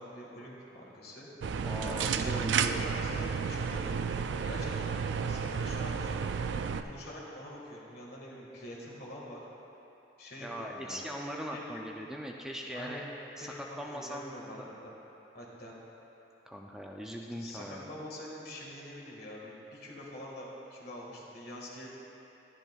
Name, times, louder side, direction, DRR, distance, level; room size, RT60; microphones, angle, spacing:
voice 1, 0.0-4.9 5.3-6.2 6.8-9.4 10.2-11.1 11.5-11.6 12.7-13.1 13.4-14.9 15.3-15.7 17.3-21.9, left 1 dB, 60° left, -4 dB, 1.7 m, -45 dB
sound 1, 1.4-6.8, right 6 dB, 85° right, 0.3 m, -32 dB
voice 2, 1.6-2.9 10.4-13.0 13.4-14.7 16.5-17.9, equal, 5° right, 0 dB, 0.4 m, -40 dB
11.5 x 10.5 x 2.3 m, 3.0 s
head